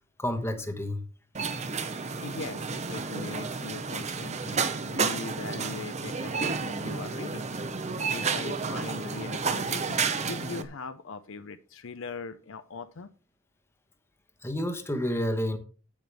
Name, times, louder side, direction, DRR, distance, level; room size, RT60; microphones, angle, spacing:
voice 1, 0.2-1.0 14.4-15.6, left 1 dB, 10° left, 1.1 m, -29 dB
sound 1, 1.3-10.6, right 5 dB, 30° right, 0.7 m, -31 dB
voice 2, 2.2-7.5 8.1-13.1, left 4 dB, 65° left, 0.6 m, -40 dB
8.7 x 8.0 x 3.4 m
head